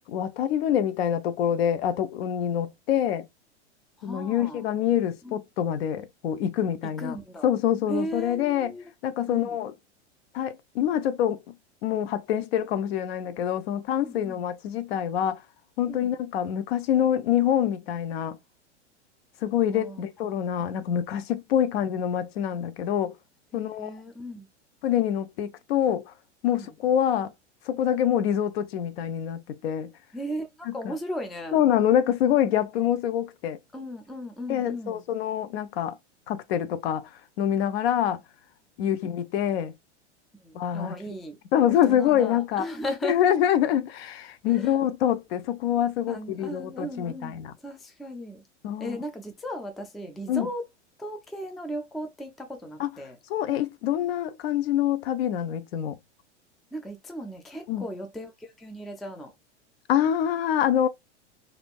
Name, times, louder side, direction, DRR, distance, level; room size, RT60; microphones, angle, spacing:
voice 1, 0.1-3.3 4.0-7.2 7.4-8.7 9.0-9.7 10.3-11.5 11.8-15.4 15.8-18.4 19.4-23.2 23.5-23.9 24.8-26.1 26.4-27.3 27.7-29.9 30.7-30.9 31.5-33.6 34.5-36.0 36.3-37.1 37.4-38.2 38.8-39.7 40.5-40.9 41.5-42.7 43.0-47.5 48.6-49.0 50.3-50.5 52.8-52.9 53.3-56.0 57.7-57.9 59.9-60.9, left 10 dB, 60° left, 0.6 m, -25 dB
voice 2, 4.0-4.7 5.2-5.4 6.8-7.5 7.9-8.9 9.3-9.6 13.9-14.4 15.9-16.1 19.7-20.7 23.5-24.5 26.5-26.7 30.1-31.6 33.7-35.0 40.3-41.4 41.7-43.2 44.5-44.7 46.1-48.4 48.8-50.6 51.0-53.2 56.7-59.3, equal, ahead, 0.3 m, -37 dB
3.3 x 2.5 x 2.3 m
hypercardioid pair, 105°, 35 cm